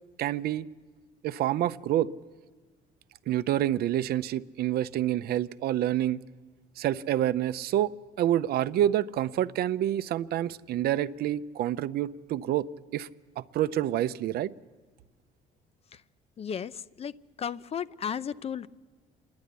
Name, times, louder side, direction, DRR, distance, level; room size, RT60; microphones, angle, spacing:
voice 1, 0.2-0.7 1.2-2.1 3.3-6.2 6.8-7.9 8.2-12.7 12.9-13.1 13.4-14.5, right 12 dB, 65° right, 13 dB, 0.6 m, -27 dB
voice 2, 16.4-18.7, left 8 dB, 35° left, 17 dB, 0.5 m, -35 dB
27.0 x 10.5 x 10.0 m, 1.4 s
cardioid pair, 110°, 17 cm